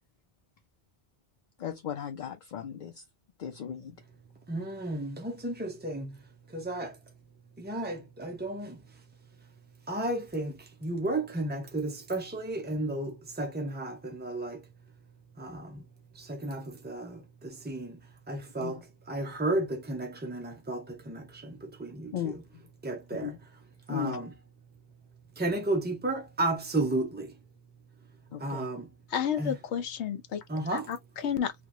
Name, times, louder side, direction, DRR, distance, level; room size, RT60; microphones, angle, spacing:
voice 1, 1.6-3.0 3.4-4.0 18.6-18.8 22.1-22.6 23.2-23.4 23.9-24.2 28.3-28.7, left 9 dB, 60° left, 0.5 m, -36 dB
voice 2, 4.5-6.2 6.5-7.0 7.6-8.8 9.9-14.7 15.4-15.8 16.1-18.0 18.3-22.4 22.8-23.4 23.9-24.3 25.4-27.4 28.4-28.9 29.4-29.6 30.5-30.9, right 2 dB, 15° right, 0.3 m, -33 dB
voice 3, 29.1-30.4 30.7-31.5, left 8 dB, 85° left, 1.0 m, -31 dB
2.9 x 2.4 x 3.6 m
omnidirectional pair, 1.1 m